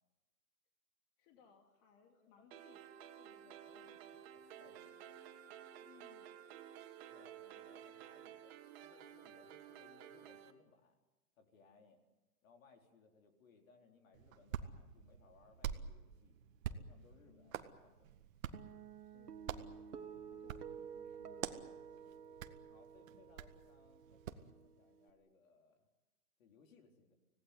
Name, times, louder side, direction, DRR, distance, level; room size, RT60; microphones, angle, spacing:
voice 1, 1.2-3.1 5.8-6.4 17.3-17.8 19.0-19.6 19.8-19.9 20.3-21.8, left 6 dB, 35° left, 3 dB, 2.4 m, -66 dB
voice 2, 2.1-2.6 3.2-5.2 7.1-11.0 11.4-12.0 12.4-16.4 16.7-18.2 19.8-19.9 21.6-25.9 26.4-27.1, left 4 dB, 60° left, 4 dB, 4.5 m, -67 dB
sound 1, 2.5-10.5, right 10 dB, 40° right, 2.5 m, -54 dB
Hands, 14.1-24.5, right 9 dB, 60° right, 1.8 m, -48 dB
Guitar, 18.5-25.1, right 7 dB, 80° right, 2.4 m, -52 dB
25.5 x 18.0 x 9.6 m, 1.1 s
hypercardioid pair, 135°, 45 cm